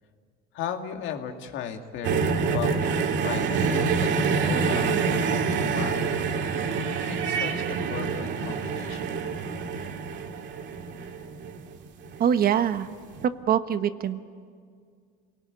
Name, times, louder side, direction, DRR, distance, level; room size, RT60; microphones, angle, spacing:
voice 1, 0.5-5.2 5.5-6.2 7.1-9.2, left 8 dB, 65° left, 5 dB, 2.4 m, -36 dB
sound 1, 2.0-12.2 13.1-13.2, right 5 dB, 60° right, 2.2 m, -27 dB
voice 2, 12.2-12.9 13.5-14.2, right 9 dB, 45° right, 11 dB, 1.2 m, -23 dB
27.5 x 18.5 x 9.8 m, 2.1 s
supercardioid pair, 105°, 21 cm